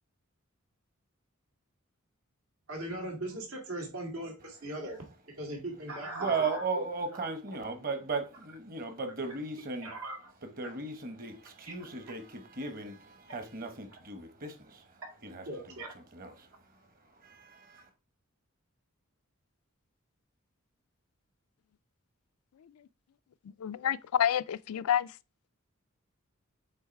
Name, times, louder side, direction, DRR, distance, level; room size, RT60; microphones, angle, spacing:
voice 1, 2.7-5.0 5.4-6.6 7.6-7.7 9.8-10.2 13.3-13.4 15.5-16.0, right 1 dB, 85° right, 2.4 m, -39 dB
voice 2, 5.9-9.9 10.4-17.9, right 4 dB, 40° right, 1.1 m, -37 dB
voice 3, 23.6-25.2, left 10 dB, 90° left, 0.4 m, -29 dB
8.0 x 3.1 x 4.4 m
head